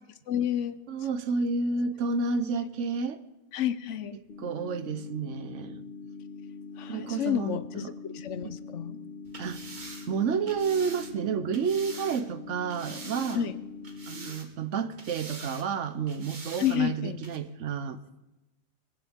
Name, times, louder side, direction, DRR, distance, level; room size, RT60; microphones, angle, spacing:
voice 1, 0.3-0.8 3.5-4.2 6.8-9.0 13.3-13.6 16.6-17.2, left 10 dB, 75° left, 14 dB, 1.1 m, -30 dB
voice 2, 0.9-3.2 4.4-5.8 6.9-7.9 8.4-8.5 9.4-9.6 10.1-13.4 14.1-18.0, right 5 dB, 75° right, 13 dB, 1.1 m, -30 dB
sound 1, 4.3-14.3, left 4 dB, 45° left, 1.9 m, -43 dB
sound 2, 9.2-12.2 12.7-13.6 13.8-14.7 15.0-15.7 16.1-16.8 17.2-17.4, right 3 dB, 40° right, 1.4 m, -45 dB
21.0 x 15.0 x 3.6 m, 1.0 s
omnidirectional pair, 1.3 m